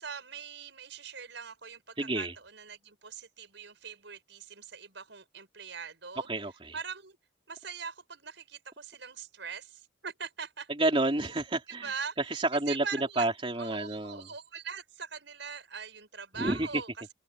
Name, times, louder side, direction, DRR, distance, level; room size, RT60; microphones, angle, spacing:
voice 1, 0.0-6.3 6.7-7.2 7.5-10.7 11.7-13.3 13.6-17.1, right 6 dB, 70° right, 5.5 m, -42 dB
voice 2, 2.0-2.3 6.3-6.8 10.8-11.9 12.5-12.8 13.2-14.3 16.4-16.7, right 2 dB, 30° right, 3.5 m, -29 dB
open air
head